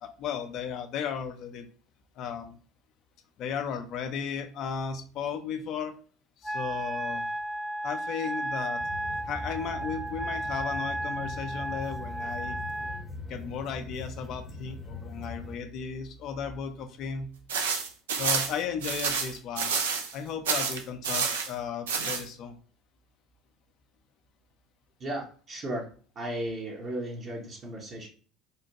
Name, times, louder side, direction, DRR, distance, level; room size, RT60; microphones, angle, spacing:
voice 1, 0.0-1.7 2.2-2.6 3.4-5.9 6.4-7.3 7.8-8.8 9.3-12.6 13.3-17.3 18.2-19.7 20.1-22.6, left 7 dB, 55° left, 7 dB, 0.5 m, -35 dB
Wind instrument woodwind instrument, 6.4-13.0, right 1 dB, ahead, 0.3 m, -34 dB
sound 1, 8.8-15.6, left 2 dB, 15° left, 0.7 m, -41 dB
sound 2, 17.5-20.1 20.4-21.5 21.9-22.2, right 5 dB, 80° right, 0.5 m, -29 dB
voice 2, 25.0-25.9 26.1-28.1, right 1 dB, 40° right, -1 dB, 0.9 m, -35 dB
3.2 x 2.1 x 2.8 m, 0.41 s
hypercardioid pair, 70°, 0 cm